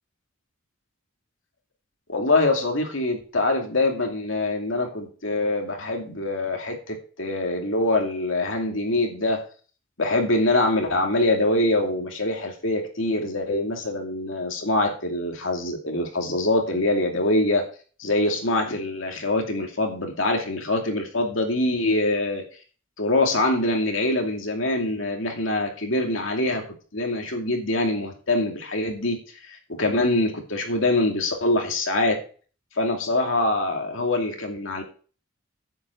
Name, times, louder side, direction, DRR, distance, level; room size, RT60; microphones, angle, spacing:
voice 1, 2.1-9.4 10.0-17.6 18.0-22.4 23.0-26.6 26.9-29.2 29.5-32.2 32.8-34.8, left 2 dB, 70° left, 2 dB, 2.6 m, -24 dB
10.0 x 6.0 x 7.8 m, 0.39 s
head